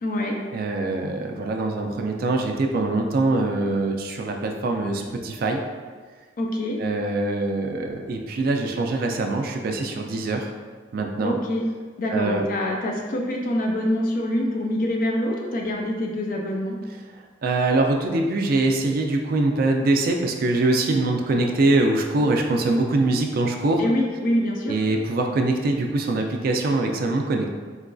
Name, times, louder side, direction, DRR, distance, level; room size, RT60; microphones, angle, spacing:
voice 1, 0.0-0.4 6.4-6.8 11.2-11.6 12.0-16.8 23.8-24.8, left 1 dB, 45° left, 0 dB, 0.4 m, -25 dB
voice 2, 0.5-5.6 6.8-10.5 10.9-11.4 12.1-12.5 17.4-23.8 24.6-27.5, right 2 dB, 50° right, 2 dB, 0.3 m, -23 dB
3.8 x 2.5 x 2.2 m, 1.5 s
head